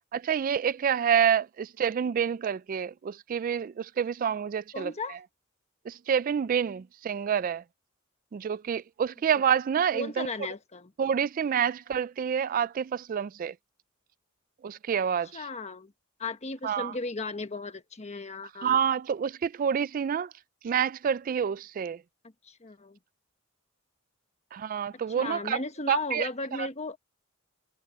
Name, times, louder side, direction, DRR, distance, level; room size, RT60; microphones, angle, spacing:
voice 1, 0.1-5.2 5.9-7.6 8.3-10.3 11.0-13.5 14.6-15.4 16.6-16.9 18.6-20.3 20.6-22.0 24.5-25.6 25.9-26.3 26.6-26.7, right 8 dB, 40° right, 0.3 m, -28 dB
voice 2, 4.7-5.2 9.9-10.9 15.3-15.9 16.2-18.8 22.4-23.0 25.1-27.0, left 3 dB, 35° left, 1.3 m, -35 dB
head